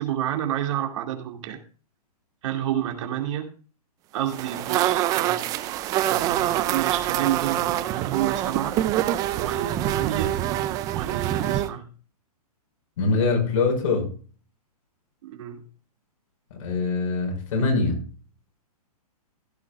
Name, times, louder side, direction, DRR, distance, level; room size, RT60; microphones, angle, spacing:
voice 1, 0.0-1.6 2.4-3.5 4.1-5.4 6.0-8.8 9.3-10.5 10.9-11.9 15.2-15.6, right 11 dB, 50° right, 2.5 m, -29 dB
sound 1, 4.3-11.7, right 13 dB, 20° right, 0.5 m, -25 dB
voice 2, 13.0-14.1 16.5-18.0, left 4 dB, 55° left, 5.6 m, -23 dB
15.5 x 11.0 x 2.5 m
hypercardioid pair, 150°, 20 cm